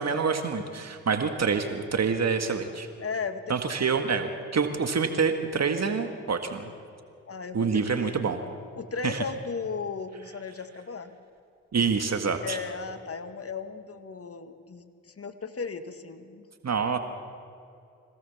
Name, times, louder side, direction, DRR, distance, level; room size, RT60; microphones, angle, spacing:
voice 1, 0.0-2.9 3.5-6.7 7.5-8.4 9.0-9.2 11.7-12.6 16.6-17.0, right 5 dB, 50° right, 6 dB, 1.9 m, -27 dB
voice 2, 3.0-3.4 7.3-8.3 8.7-11.1 12.4-16.4, left 5 dB, 40° left, 9 dB, 1.9 m, -36 dB
25.5 x 17.0 x 7.2 m, 2.5 s
supercardioid pair, 45°, 35 cm